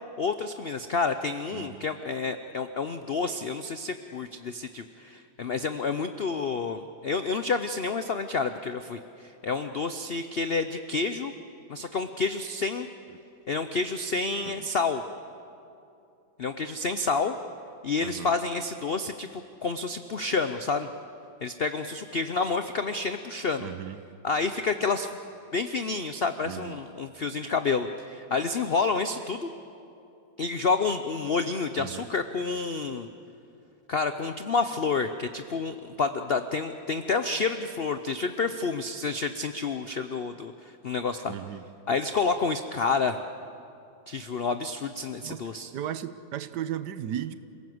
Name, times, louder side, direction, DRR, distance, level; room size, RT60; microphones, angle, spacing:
voice 1, 0.2-11.3 11.7-12.9 13.5-15.0 16.4-17.3 17.8-20.9 21.4-23.7 24.2-25.1 25.5-29.5 30.4-33.1 33.9-41.3 41.9-43.2 44.1-45.7, left 4 dB, 75° left, 9 dB, 0.5 m, -29 dB
voice 2, 1.5-1.9 13.1-13.2 14.4-14.7 18.0-18.3 23.6-24.0 26.4-26.8 31.8-32.1 41.3-41.6 45.2-47.4, right 10 dB, 70° right, 13 dB, 1.3 m, -36 dB
27.5 x 17.5 x 7.8 m, 2.6 s
omnidirectional pair, 2.0 m